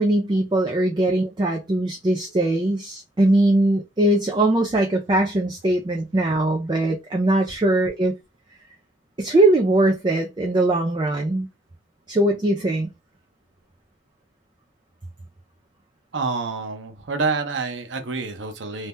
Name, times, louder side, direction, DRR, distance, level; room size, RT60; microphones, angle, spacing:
voice 1, 0.0-8.1 9.2-11.5 12.1-12.9, right 1 dB, 25° right, 0.4 m, -21 dB
voice 2, 16.1-18.9, right 4 dB, 90° right, 0.7 m, -27 dB
2.7 x 2.2 x 3.4 m
head